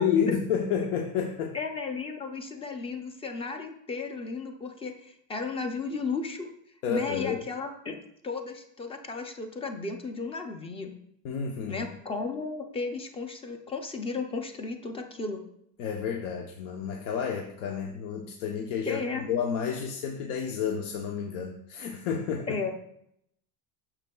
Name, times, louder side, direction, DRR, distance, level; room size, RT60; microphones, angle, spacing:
voice 1, 0.0-1.6 6.8-7.4 11.2-11.9 15.8-22.5, left 7 dB, 85° left, 1 dB, 0.9 m, -30 dB
voice 2, 1.5-6.5 6.9-8.0 8.2-10.9 11.7-15.4 18.9-19.3 22.5-22.7, left 4 dB, 15° left, 5 dB, 0.4 m, -34 dB
8.9 x 6.6 x 2.2 m, 0.74 s
cardioid pair, 145°, 45 cm